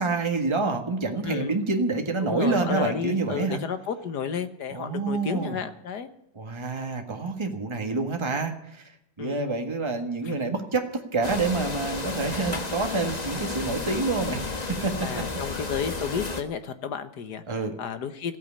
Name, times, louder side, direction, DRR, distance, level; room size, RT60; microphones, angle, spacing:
voice 1, 0.0-3.6 4.7-5.6 6.3-8.9 9.2-15.1 17.5-17.7, right 3 dB, 15° right, 4 dB, 1.6 m, -27 dB
voice 2, 1.2-1.6 2.2-6.1 9.2-9.5 10.2-10.6 15.0-18.4, left 7 dB, 60° left, 10 dB, 1.6 m, -32 dB
sound 1, 11.2-16.4, left 3 dB, 25° left, 1.1 m, -32 dB
15.5 x 8.4 x 9.9 m, 0.76 s
omnidirectional pair, 2.0 m